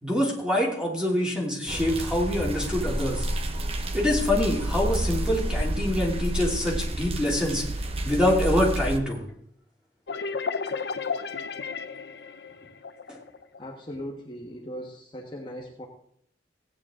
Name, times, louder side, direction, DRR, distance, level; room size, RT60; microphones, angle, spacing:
voice 1, 0.0-3.2 3.9-7.6 8.0-9.2 13.1-13.2, left 1 dB, 5° right, -3 dB, 3.0 m, -25 dB
sound 1, 1.7-9.0, right 1 dB, 35° right, 0.9 m, -29 dB
sound 2, 10.1-13.6, left 5 dB, 70° left, 0.7 m, -33 dB
voice 2, 13.6-15.9, equal, 30° left, -1 dB, 1.3 m, -38 dB
17.0 x 9.3 x 3.8 m, 0.69 s
head